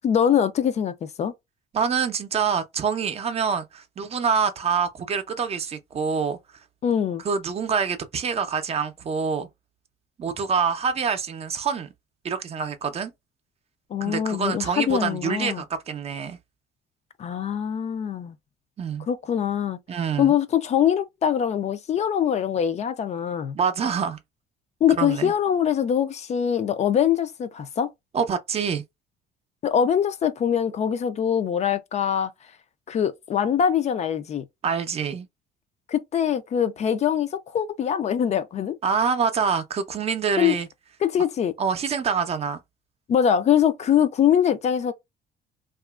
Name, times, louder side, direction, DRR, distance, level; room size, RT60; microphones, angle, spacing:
voice 1, 0.0-1.3 6.8-7.2 13.9-15.6 17.2-18.4 19.1-19.8 20.2-23.5 24.8-27.9 29.6-32.3 32.9-34.4 35.9-38.8 40.4-40.6 41.0-41.5 43.1-44.9, left 9 dB, 40° left, 0.4 m, -23 dB
voice 2, 1.7-6.4 7.2-9.5 10.2-11.9 12.2-13.1 14.0-16.4 18.8-19.1 19.9-20.3 23.5-24.2 25.0-25.3 28.1-28.8 34.6-35.3 38.8-40.7 41.6-42.6, right 6 dB, 35° right, 0.5 m, -26 dB
2.8 x 2.4 x 2.3 m
cardioid pair, 110°, 17 cm